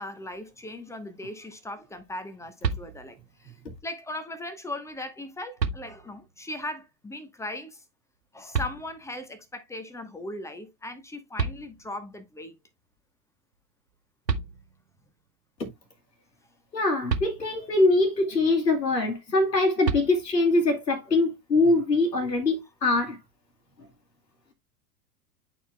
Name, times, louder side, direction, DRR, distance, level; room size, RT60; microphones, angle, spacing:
voice 1, 0.0-3.5 3.8-7.8 8.3-12.6, left 1 dB, 5° left, 1.1 m, -38 dB
sound 1, 2.6-3.4 4.9-5.0 5.6-6.3 8.5-9.3 11.0-11.1 11.4-12.2 13.9-14.0 14.3-15.0 17.1-17.9 19.8-20.6, right 5 dB, 85° right, 0.9 m, -32 dB
voice 2, 16.7-23.2, left 2 dB, 80° left, 1.9 m, -23 dB
11.0 x 4.5 x 2.2 m
figure-of-eight pair, 95°, 49 cm